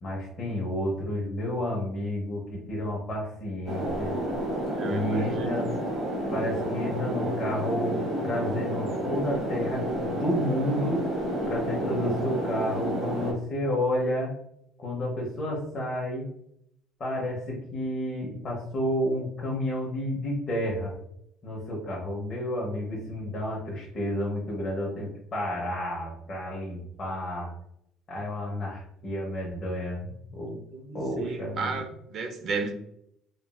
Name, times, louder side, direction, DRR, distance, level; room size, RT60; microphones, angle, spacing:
voice 1, 0.0-4.2 4.9-5.7 6.3-11.0 11.5-14.3 14.8-16.2 17.0-20.9 21.4-27.5 28.1-30.6 30.9-31.8, left 1 dB, 30° left, -4 dB, 0.7 m, -31 dB
sound 1, 3.7-13.3, right 1 dB, 20° right, 1.1 m, -30 dB
voice 2, 4.7-5.7 30.7-32.7, right 4 dB, 40° right, 6 dB, 0.4 m, -34 dB
3.0 x 2.4 x 2.2 m, 0.74 s
cardioid pair, 155°, 0 cm